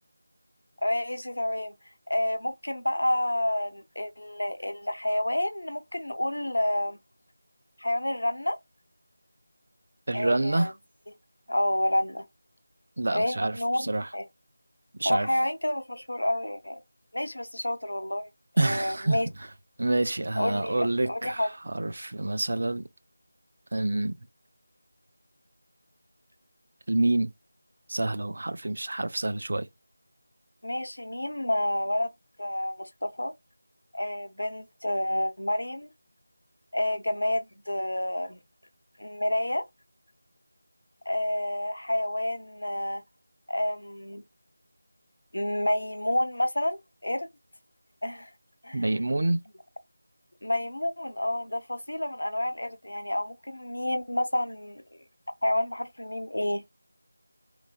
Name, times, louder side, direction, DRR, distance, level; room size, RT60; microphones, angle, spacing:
voice 1, 0.8-1.7 2.1-7.0 7.8-8.6 10.1-10.7 11.5-12.3 13.1-14.2 15.0-16.8 17.1-18.3 18.6-19.3 20.4-21.5 30.6-32.1 32.4-33.3 33.9-35.9 36.7-38.4 39.0-39.6 41.1-43.0 43.5-44.2 45.3-47.3 48.0-48.3 48.6-48.8 50.4-54.8 55.4-56.6, left 1 dB, 80° left, 0.7 m, -29 dB
voice 2, 10.1-10.7 13.0-14.1 15.0-15.3 18.6-19.2 19.8-22.8 23.7-24.1 26.9-27.3 27.9-29.7 48.7-49.4, right 2 dB, 55° right, 0.4 m, -27 dB
3.1 x 2.2 x 2.3 m
figure-of-eight pair, 170°, 0 cm